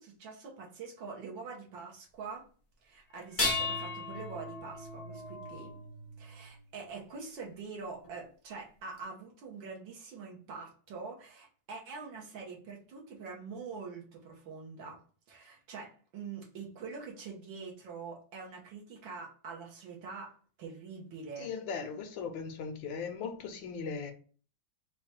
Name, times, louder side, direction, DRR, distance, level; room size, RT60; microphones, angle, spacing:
voice 1, 0.0-2.4 2.8-5.8 6.2-15.0 15.3-20.3 20.6-21.5, right 4 dB, 75° right, 1.8 m, -44 dB
sound 1, 3.2-6.5 8.0-8.1 9.0-9.1, left 3 dB, 60° left, 0.3 m, -36 dB
voice 2, 21.4-24.1, left 5 dB, 75° left, 1.4 m, -38 dB
4.6 x 2.2 x 4.3 m
omnidirectional pair, 2.1 m